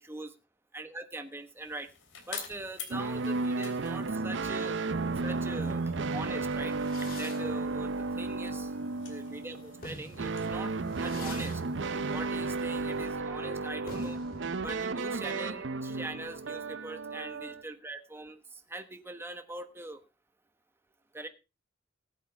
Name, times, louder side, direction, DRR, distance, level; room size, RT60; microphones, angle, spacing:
voice 1, 0.7-1.9 2.3-4.8 5.2-8.7 9.1-11.6 12.1-14.2 14.6-20.0 21.1-21.3, right 2 dB, 10° right, 7 dB, 1.2 m, -42 dB
sound 1, 1.4-13.1, left 5 dB, 80° left, 3.3 m, -50 dB
sound 2, 2.9-17.6, right 3 dB, 70° right, 0.7 m, -33 dB
sound 3, 6.7-9.2 9.6-17.1, left 2 dB, 50° left, 2.6 m, -50 dB
19.5 x 8.4 x 3.3 m, 0.28 s
head